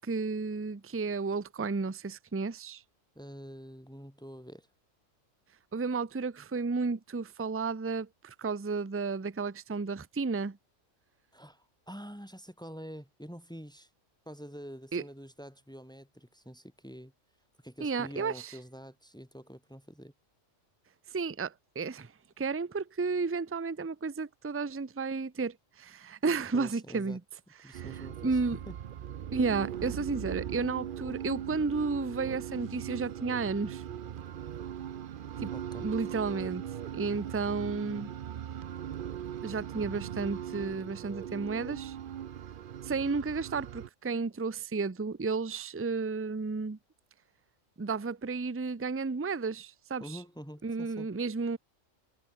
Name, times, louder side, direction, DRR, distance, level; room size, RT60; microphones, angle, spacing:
voice 1, 0.1-2.8 5.7-10.6 14.9-15.0 17.8-18.5 21.1-22.1 22.4-27.2 27.6-27.8 28.2-28.6 29.3-33.8 35.4-35.5 35.8-36.6 36.9-38.1 39.4-42.0 42.8-46.8 47.8-50.0 50.6-51.6, right 4 dB, 15° right, 0.5 m, -32 dB
voice 2, 3.1-4.7 11.3-13.9 14.3-17.1 17.6-20.1 26.5-27.2 27.6-28.7 35.5-35.9 50.0-51.1, equal, 5° left, 7.9 m, -46 dB
sound 1, 27.7-43.9, right 10 dB, 55° right, 0.7 m, -40 dB
omnidirectional pair, 1.3 m